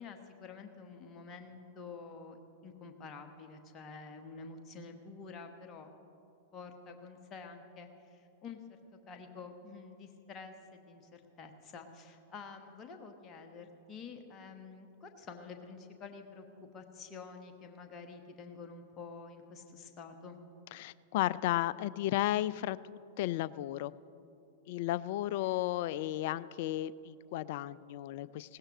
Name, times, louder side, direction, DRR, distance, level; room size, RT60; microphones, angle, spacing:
voice 1, 0.0-5.9 6.5-16.4 16.7-20.4 25.4-25.6, left 4 dB, 30° left, 4 dB, 1.3 m, -49 dB
voice 2, 20.7-23.9 24.7-28.6, left 14 dB, 50° left, 18 dB, 0.3 m, -34 dB
20.0 x 17.0 x 3.0 m, 2.7 s
figure-of-eight pair, 95°, 0 cm